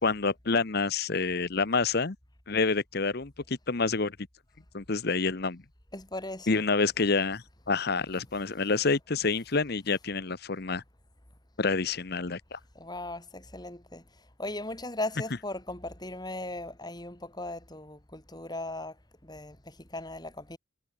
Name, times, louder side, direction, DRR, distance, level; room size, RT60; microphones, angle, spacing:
voice 1, 0.0-2.2 2.5-4.2 4.7-5.6 6.5-10.8 11.6-12.6, left 4 dB, 50° left, 1.0 m, -28 dB
voice 2, 5.9-6.6 12.7-14.0 14.4-18.9 19.2-20.6, left 2 dB, 20° left, 3.1 m, -38 dB
head